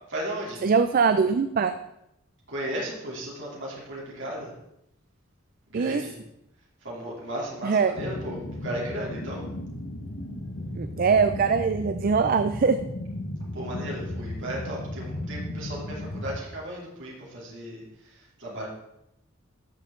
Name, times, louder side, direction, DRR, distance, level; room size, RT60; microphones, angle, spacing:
voice 1, 0.1-0.6 2.5-4.5 5.7-6.2 6.8-9.5 13.5-18.7, right 1 dB, 60° right, -4 dB, 3.0 m, -35 dB
voice 2, 0.6-1.7 5.7-6.0 7.6-7.9 10.8-12.8, right 5 dB, 45° right, 10 dB, 0.4 m, -22 dB
sound 1, 7.9-16.4, left 1 dB, 75° left, 1.3 m, -35 dB
13.5 x 6.5 x 3.8 m, 0.83 s
head